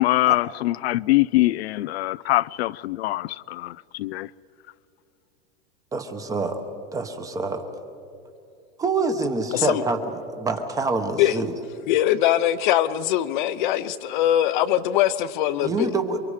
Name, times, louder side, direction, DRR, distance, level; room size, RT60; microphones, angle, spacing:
voice 1, 0.0-4.3, left 17 dB, 85° left, 0.5 m, -23 dB
voice 2, 5.9-6.6 6.9-7.6 8.8-10.0 10.3-11.5 15.6-16.2, right 3 dB, 10° right, 1.0 m, -26 dB
voice 3, 11.9-15.9, left 12 dB, 50° left, 0.8 m, -22 dB
28.5 x 23.5 x 4.9 m
supercardioid pair, 170°, 31 cm